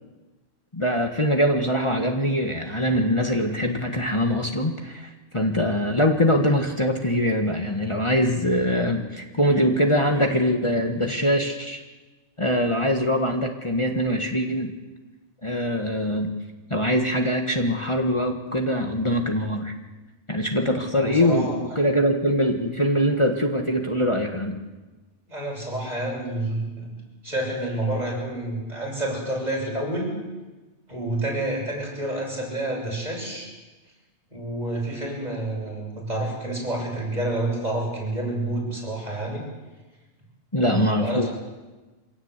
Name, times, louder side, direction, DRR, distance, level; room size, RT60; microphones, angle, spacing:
voice 1, 0.7-11.8 12.4-14.7 15.4-16.4 16.7-19.7 20.3-24.6 40.5-41.3, equal, 25° left, 2 dB, 1.7 m, -23 dB
voice 2, 20.9-21.6 25.3-26.9 27.2-30.1 30.9-33.5 34.3-39.4 40.6-41.3, right 1 dB, 35° right, -2 dB, 7.2 m, -29 dB
25.0 x 17.0 x 8.3 m, 1.2 s
omnidirectional pair, 1.2 m